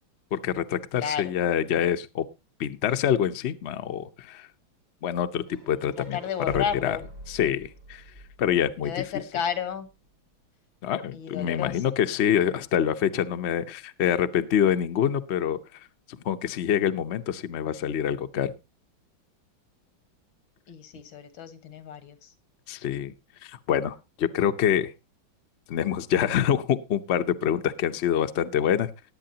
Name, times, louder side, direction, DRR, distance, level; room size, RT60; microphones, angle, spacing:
voice 1, 0.3-2.2 2.6-4.5 5.0-6.2 6.5-7.0 7.3-8.0 8.4-9.0 10.8-15.6 16.1-18.5 22.7-23.1 23.4-24.9 25.7-28.9, left 9 dB, 60° left, 9 dB, 0.6 m, -26 dB
voice 2, 1.0-1.3 6.0-7.1 8.8-9.9 11.1-12.0 20.7-22.3, left 8 dB, 80° left, 11 dB, 2.2 m, -32 dB
sound 1, 5.5-9.4, equal, 60° right, 5.6 m, -45 dB
19.5 x 8.6 x 2.8 m, 0.25 s
omnidirectional pair, 2.1 m